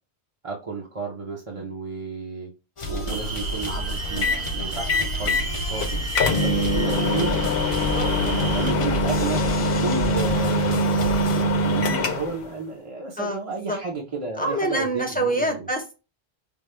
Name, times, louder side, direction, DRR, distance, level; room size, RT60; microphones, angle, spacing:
voice 1, 0.4-2.5 2.9-6.0 6.4-7.5 8.2-9.4 9.8-15.7, right 3 dB, 35° right, -2 dB, 0.8 m, -32 dB
sound 1, 2.8-11.4, left 1 dB, 35° left, 0.6 m, -32 dB
sound 2, 3.1-8.7, right 3 dB, 65° right, 0.8 m, -31 dB
sound 3, 4.2-4.5 4.9-5.5 5.8-5.9 6.1-12.4, left 1 dB, 70° left, 0.9 m, -23 dB
voice 2, 7.8-8.6 13.2-13.8 14.4-15.9, right 1 dB, 10° left, 3 dB, 0.8 m, -27 dB
5.3 x 2.3 x 3.2 m, 0.28 s
omnidirectional pair, 1.0 m